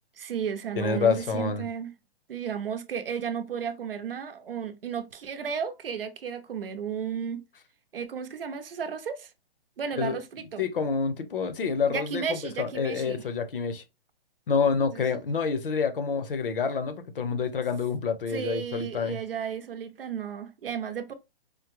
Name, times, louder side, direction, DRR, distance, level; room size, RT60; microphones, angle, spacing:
voice 1, 0.2-1.9 2.3-7.4 7.9-9.3 9.8-10.7 11.9-13.2 14.9-15.0 18.3-21.1, right 7 dB, 60° right, 0.7 m, -33 dB
voice 2, 0.8-1.7 10.0-10.2 10.6-13.8 14.5-19.2, left 5 dB, 55° left, 0.8 m, -28 dB
5.1 x 2.1 x 3.0 m
hypercardioid pair, 165°, 32 cm